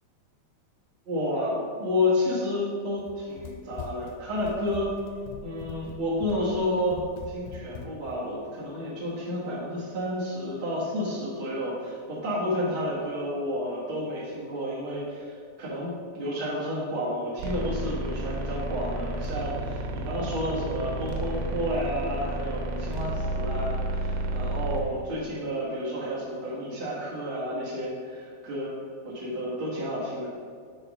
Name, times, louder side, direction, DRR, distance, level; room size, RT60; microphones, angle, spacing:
voice 1, 1.0-4.9 5.4-7.0 7.3-30.3, left 1 dB, 65° right, -8 dB, 1.3 m, -30 dB
Run, 3.0-8.2, left 6 dB, 85° left, 2.6 m, -42 dB
sound 1, 17.4-24.8, right 1 dB, 85° right, 3.1 m, -31 dB
7.8 x 4.3 x 6.2 m, 2.2 s
omnidirectional pair, 4.9 m